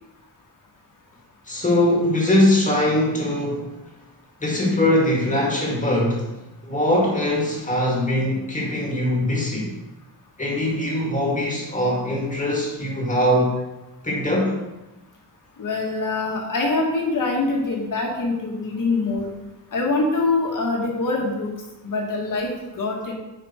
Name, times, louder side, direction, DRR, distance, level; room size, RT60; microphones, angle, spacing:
voice 1, 1.5-3.8 4.4-6.4 6.6-9.8 10.4-13.6 14.0-14.6, left 1 dB, 20° left, -2 dB, 2.0 m, -21 dB
voice 2, 15.6-19.3 19.7-21.5 21.8-23.1, left 3 dB, 45° left, 0 dB, 1.7 m, -24 dB
9.5 x 5.1 x 4.4 m, 1.0 s
wide cardioid pair, 175°, 42 cm